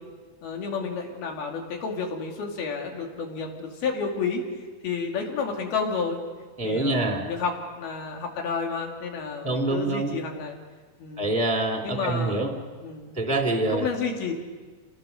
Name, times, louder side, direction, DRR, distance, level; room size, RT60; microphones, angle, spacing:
voice 1, 0.4-4.4 4.8-6.2 6.6-10.6 11.0-11.3 11.8-12.4 12.8-13.2 13.7-14.3, left 5 dB, 85° left, 1 dB, 4.5 m, -30 dB
voice 2, 6.6-7.3 9.4-10.1 11.2-12.5 13.2-13.9, right 2 dB, 5° left, 3 dB, 1.8 m, -25 dB
28.0 x 20.5 x 6.7 m, 1.4 s
omnidirectional pair, 4.3 m